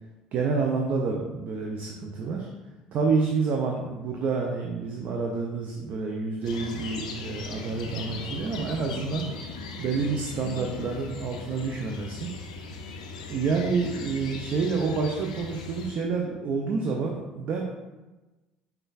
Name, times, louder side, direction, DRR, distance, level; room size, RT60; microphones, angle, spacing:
voice 1, 0.3-2.5 2.9-9.3 9.8-12.3 13.3-17.6, right 4 dB, 45° right, 0 dB, 0.4 m, -28 dB
sound 1, 6.4-15.9, left 4 dB, 75° left, 0.3 m, -38 dB
5.0 x 2.2 x 2.3 m, 1.1 s
figure-of-eight pair, 60°, 4 cm